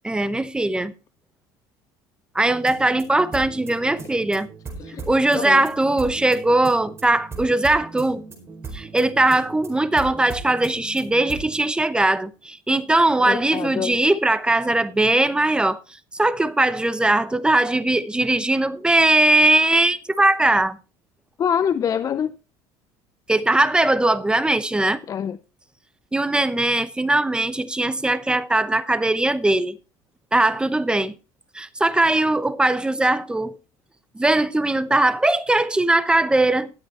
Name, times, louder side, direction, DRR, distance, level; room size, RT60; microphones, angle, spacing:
voice 1, 0.0-0.9 2.3-4.5 5.0-8.2 8.7-15.8 16.1-20.8 23.3-25.0 26.1-29.8 30.3-31.1 31.5-33.6 34.1-36.7, right 2 dB, 10° right, 0.8 m, -20 dB
sound 1, 2.4-11.6, right 4 dB, 25° right, 4.6 m, -38 dB
voice 2, 5.3-5.6 13.2-14.0 21.4-22.4 25.1-25.4, left 8 dB, 35° left, 0.5 m, -25 dB
13.5 x 7.9 x 4.3 m
supercardioid pair, 115°, 10 cm